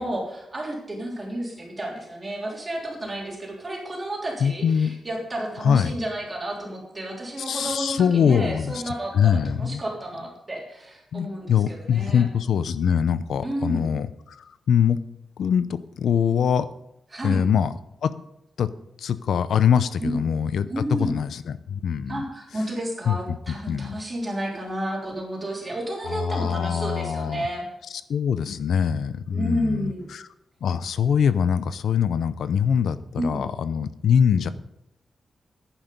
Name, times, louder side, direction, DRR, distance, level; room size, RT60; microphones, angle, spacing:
voice 1, 0.0-12.2 13.4-13.9 17.1-17.4 20.0-20.2 20.6-21.2 22.1-27.6 29.3-30.1 33.2-33.4, right 1 dB, 20° right, -2 dB, 3.5 m, -31 dB
voice 2, 4.4-4.9 5.6-6.0 7.4-9.8 11.1-15.0 15.4-16.7 17.2-17.7 18.0-18.1 18.6-18.7 19.0-22.2 23.1-23.9 26.1-27.5 28.1-30.3 30.6-34.5, left 7 dB, 85° left, 14 dB, 0.6 m, -23 dB
10.5 x 10.0 x 5.3 m, 0.84 s
wide cardioid pair, 170°, 0 cm